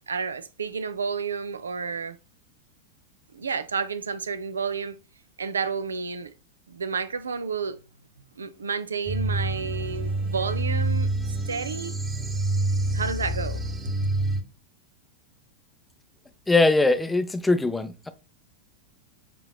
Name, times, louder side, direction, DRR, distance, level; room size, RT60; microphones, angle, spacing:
voice 1, 0.1-2.2 3.3-5.0 5.4-6.3 6.7-7.8 8.4-11.1 11.5-11.9 12.9-13.6, right 5 dB, 70° right, 0.4 m, -30 dB
sound 1, 9.1-14.4, right 2 dB, 10° right, 0.9 m, -27 dB
voice 2, 16.5-18.1, left 3 dB, 5° left, 0.5 m, -21 dB
6.6 x 2.9 x 2.3 m
figure-of-eight pair, 90°, 0 cm